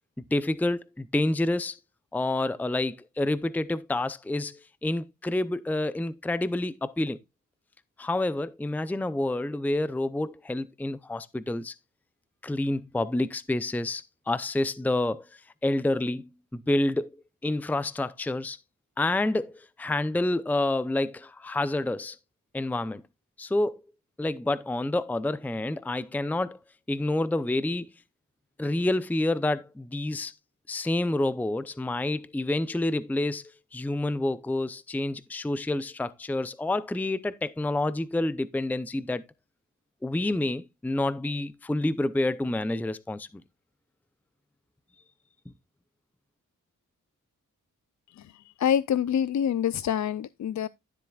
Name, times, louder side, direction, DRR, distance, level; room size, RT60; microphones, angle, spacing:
voice 1, 0.3-1.8 2.1-7.2 8.0-11.7 12.4-15.3 15.6-17.2 17.4-18.6 19.0-22.2 22.5-23.0 23.4-23.8 24.2-26.6 26.9-27.9 28.6-30.3 30.7-39.2 40.0-43.3, left 2 dB, 5° left, 0.6 m, -28 dB
voice 2, 48.2-50.7, left 9 dB, 60° left, 0.5 m, -26 dB
13.5 x 7.5 x 2.4 m
wide cardioid pair, 95°, 33 cm